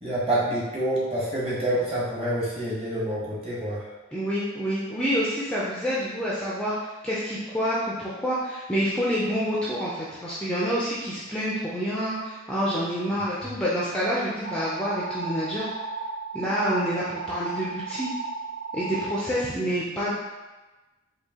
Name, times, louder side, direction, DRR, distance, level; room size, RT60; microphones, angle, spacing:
voice 1, 0.0-3.9, right 1 dB, 25° right, -7 dB, 1.0 m, -27 dB
voice 2, 4.1-15.7 16.3-18.1 18.7-20.1, equal, 5° left, -8 dB, 0.4 m, -27 dB
sound 1, 14.4-19.2, right 3 dB, 60° right, 0.4 m, -34 dB
4.6 x 2.8 x 2.8 m, 1.1 s
head